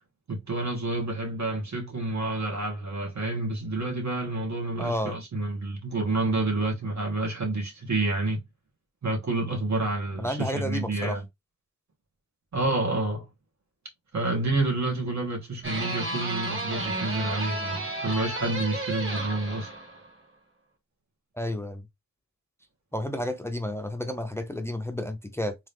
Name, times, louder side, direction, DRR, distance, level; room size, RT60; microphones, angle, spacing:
voice 1, 0.3-8.4 9.0-11.2 12.5-13.3 14.1-19.7, right 2 dB, 70° right, 1.8 m, -29 dB
voice 2, 4.8-5.2 10.2-11.2 21.4-21.9 22.9-25.6, left 1 dB, 10° left, 0.5 m, -31 dB
sound 1, 15.6-20.1, right 2 dB, 45° right, 1.7 m, -32 dB
3.7 x 2.7 x 3.5 m
wide cardioid pair, 75°, 29 cm